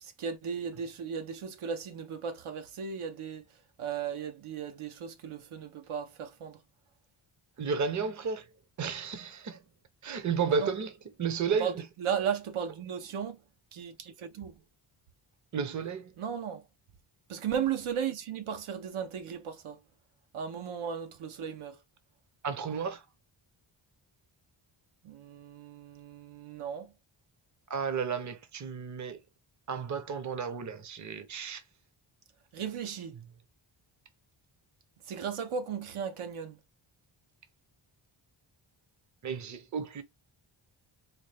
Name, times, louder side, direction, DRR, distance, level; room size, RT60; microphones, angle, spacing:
voice 1, 0.0-3.5 3.8-6.6 10.5-10.7 11.6-13.4 13.7-14.6 16.2-16.7 17.3-19.8 20.3-21.8 25.0-26.9 32.5-33.2 35.0-36.6, right 7 dB, 80° right, 0.8 m, -36 dB
voice 2, 7.6-8.5 8.8-9.7 10.0-10.9 11.2-11.8 15.5-16.1 22.4-23.1 27.7-29.2 29.7-31.6 39.2-40.0, right 6 dB, 35° right, 0.7 m, -33 dB
4.1 x 2.2 x 3.3 m
wide cardioid pair, 100°, 49 cm